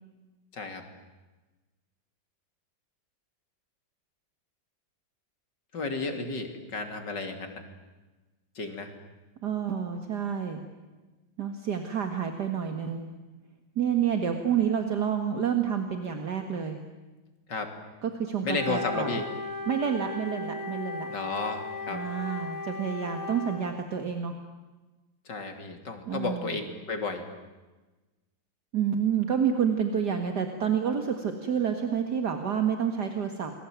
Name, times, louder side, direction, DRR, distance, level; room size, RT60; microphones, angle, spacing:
voice 1, 0.5-0.9 5.7-7.6 8.6-8.9 17.5-17.7 18.4-19.3 21.1-22.0 25.3-27.3, left 3 dB, 65° left, 5 dB, 3.7 m, -33 dB
voice 2, 9.4-10.6 11.4-13.1 13.8-16.8 18.0-19.1 19.7-21.1 21.9-24.3 26.1-26.6 28.7-33.5, right 8 dB, 60° right, 5 dB, 2.3 m, -29 dB
Wind instrument woodwind instrument, 18.5-23.7, left 3 dB, 85° left, 3.3 m, -36 dB
29.0 x 21.5 x 9.4 m, 1.2 s
omnidirectional pair, 2.1 m